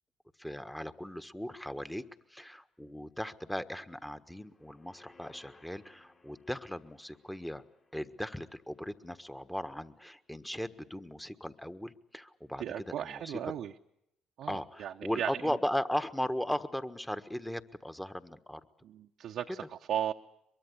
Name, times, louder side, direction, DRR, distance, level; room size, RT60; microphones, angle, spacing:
voice 1, 0.4-2.0 2.3-7.6 7.9-13.4 14.5-18.6 19.5-19.6, equal, 5° left, 10 dB, 1.5 m, -37 dB
sound 1, 4.3-9.6 10.0-10.1, left 3 dB, 35° left, 3.3 m, -63 dB
voice 2, 12.6-13.7 14.4-15.4 18.8-20.1, right 10 dB, 65° right, 2 dB, 0.9 m, -36 dB
23.5 x 22.5 x 8.3 m, 0.80 s
hypercardioid pair, 55°, 0 cm